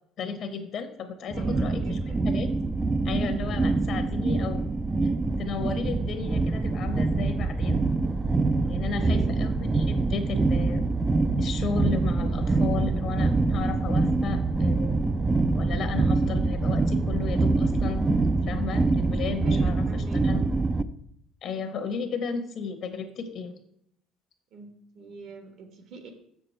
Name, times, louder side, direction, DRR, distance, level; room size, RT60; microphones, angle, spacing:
voice 1, 0.2-2.0 2.3-2.5 3.0-4.7 5.0-5.1 5.4-7.8 8.7-10.9 11.4-15.0 15.5-20.4 21.4-23.6, left 5 dB, 55° left, 8 dB, 0.9 m, -34 dB
sound 1, 1.3-20.8, right 3 dB, 15° right, 0.3 m, -25 dB
voice 2, 1.3-2.3 3.4-3.7 8.9-9.4 19.4-20.6 24.5-26.1, right 4 dB, 65° right, 6 dB, 1.3 m, -44 dB
6.8 x 6.7 x 4.3 m, 0.72 s
cardioid pair, 135°, 0 cm